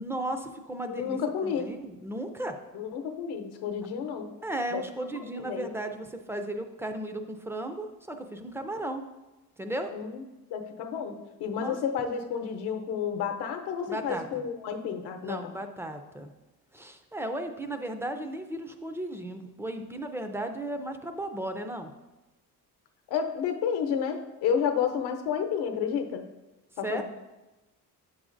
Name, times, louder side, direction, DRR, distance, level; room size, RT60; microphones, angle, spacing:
voice 1, 0.0-2.6 4.4-9.1 9.6-9.9 11.6-11.8 13.9-14.4 15.2-16.3 16.7-21.9 26.8-27.0, right 1 dB, 5° right, 7 dB, 0.3 m, -35 dB
voice 2, 0.9-1.7 2.7-4.3 4.7-4.8 5.1-5.7 9.9-10.2 10.5-15.5 23.1-26.2 26.8-27.0, left 7 dB, 85° left, 6 dB, 0.8 m, -31 dB
8.3 x 6.1 x 2.5 m, 1.1 s
cardioid pair, 125°, 38 cm